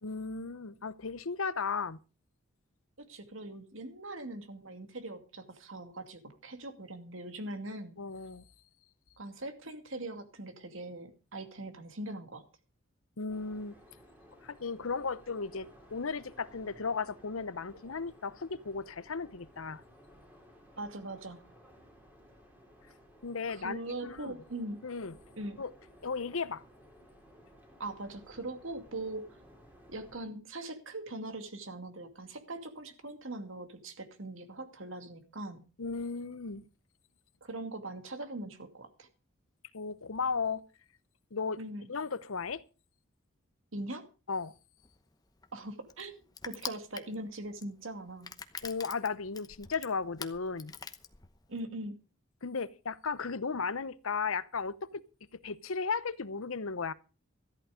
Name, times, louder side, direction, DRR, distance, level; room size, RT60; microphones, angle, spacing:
voice 1, 0.0-2.0 8.0-8.4 13.2-13.7 14.4-19.8 23.2-24.3 24.8-25.1 25.6-25.7 26.0-26.6 35.8-36.6 39.7-40.6 41.3-41.6 41.9-42.6 44.3-44.5 48.6-50.7 52.4-55.0 55.3-56.9, left 5 dB, 80° left, 0.9 m, -35 dB
voice 2, 3.0-8.0 9.2-12.4 20.8-21.4 23.5-24.8 25.4-25.6 27.8-29.2 29.9-35.6 37.4-39.1 41.6-41.9 43.7-44.0 45.5-48.3 51.5-52.0, right 2 dB, 70° right, 2.4 m, -41 dB
sound 1, 13.3-30.2, equal, 10° right, 3.5 m, -58 dB
Crushing, 44.8-51.6, left 5 dB, 20° left, 0.9 m, -45 dB
14.0 x 11.5 x 5.1 m
head